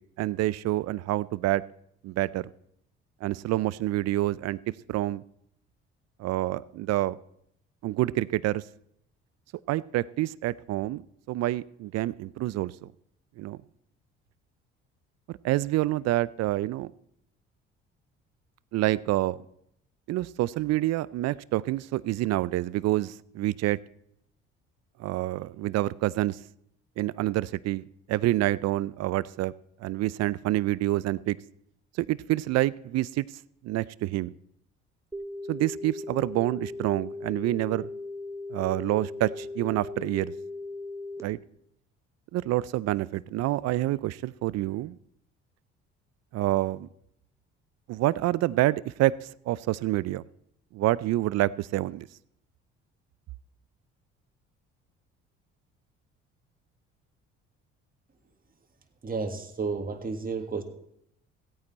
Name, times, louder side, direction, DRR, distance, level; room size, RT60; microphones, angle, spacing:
voice 1, 0.2-1.6 2.0-2.5 3.2-4.6 4.9-5.2 6.2-7.2 7.8-8.6 9.7-12.9 13.4-13.6 15.3-16.9 18.7-19.4 20.1-23.8 25.0-26.4 27.0-29.5 29.8-31.4 32.0-33.2 33.6-34.3 35.5-37.9 38.5-40.3 41.2-41.4 42.3-45.0 46.3-46.9 47.9-50.2 50.7-52.1, right 16 dB, 60° right, 20 dB, 0.5 m, -27 dB
sound 1, 35.1-41.2, left 2 dB, 10° right, 1.3 m, -38 dB
voice 2, 59.0-60.6, right 4 dB, 30° right, 5 dB, 1.8 m, -32 dB
16.0 x 8.9 x 4.2 m, 0.75 s
hypercardioid pair, 65°, 29 cm